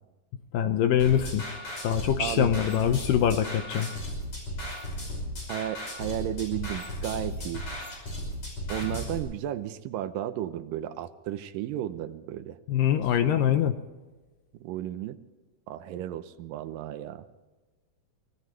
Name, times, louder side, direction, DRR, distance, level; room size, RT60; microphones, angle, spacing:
voice 1, 0.5-1.5 1.8-3.9 12.7-13.8, left 9 dB, 80° left, 9 dB, 2.1 m, -24 dB
sound 1, 1.0-9.2, equal, 40° left, 6.5 m, -35 dB
voice 2, 2.2-2.5 5.5-7.6 8.7-12.6 12.9-13.6 14.6-15.2 15.7-17.2, right 12 dB, 75° right, 10 dB, 2.1 m, -34 dB
24.5 x 18.0 x 3.2 m, 1.2 s
omnidirectional pair, 4.6 m